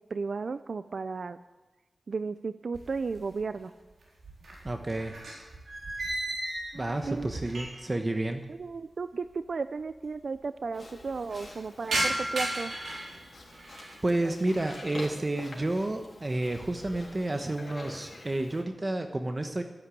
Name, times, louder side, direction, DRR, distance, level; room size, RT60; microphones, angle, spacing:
voice 1, 0.1-1.4 2.1-3.7 7.1-7.3 8.5-12.7 14.2-14.4, right 4 dB, 65° right, 12 dB, 0.4 m, -34 dB
sound 1, 2.7-3.6 3.9-8.0 8.3-8.4 9.2-9.3 9.5-9.6 9.9-10.4 10.8-14.0 14.4-14.9 15.4-15.8 16.2-17.1, right 1 dB, 90° right, 4.5 m, -36 dB
voice 2, 4.6-5.2 6.7-8.4 14.0-19.6, right 2 dB, 30° right, 6 dB, 1.0 m, -30 dB
Livestock farm animals working animals, 10.7-18.6, left 2 dB, 45° left, 3.5 m, -47 dB
13.5 x 11.5 x 8.4 m, 1.1 s
wide cardioid pair, 90°, 0 cm